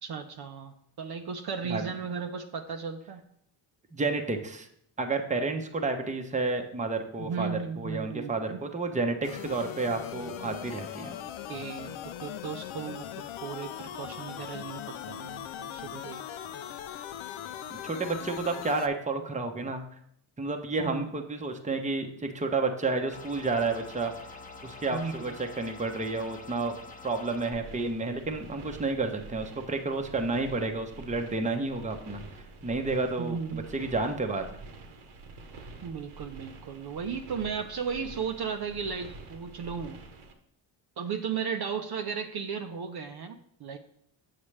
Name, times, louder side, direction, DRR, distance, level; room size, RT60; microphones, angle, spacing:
voice 1, 0.0-3.2 7.2-8.6 11.0-11.2 11.5-16.2 20.8-21.1 24.9-25.3 33.2-33.8 35.8-40.0 41.0-43.8, right 6 dB, 50° right, 5 dB, 0.7 m, -35 dB
voice 2, 3.9-4.7 5.0-11.2 17.8-19.8 20.4-24.1 24.6-26.8 27.0-32.2 32.6-34.4, right 3 dB, 15° right, 4 dB, 0.8 m, -31 dB
sound 1, 9.2-18.9, left 10 dB, 70° left, 0.6 m, -40 dB
sound 2, 23.1-27.5, left 4 dB, 15° left, 0.9 m, -46 dB
sound 3, 27.5-40.3, right 3 dB, 75° right, 1.2 m, -47 dB
7.2 x 6.6 x 3.3 m, 0.71 s
cardioid pair, 80°, 50 cm